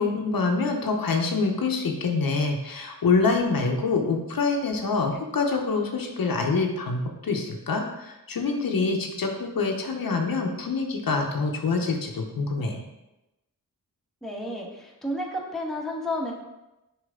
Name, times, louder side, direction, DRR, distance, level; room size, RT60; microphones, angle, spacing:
voice 1, 0.0-12.8, left 4 dB, 80° left, 2 dB, 0.9 m, -26 dB
voice 2, 14.2-16.3, left 1 dB, ahead, -3 dB, 1.4 m, -31 dB
6.7 x 4.8 x 3.7 m, 0.96 s
wide cardioid pair, 85°, 34 cm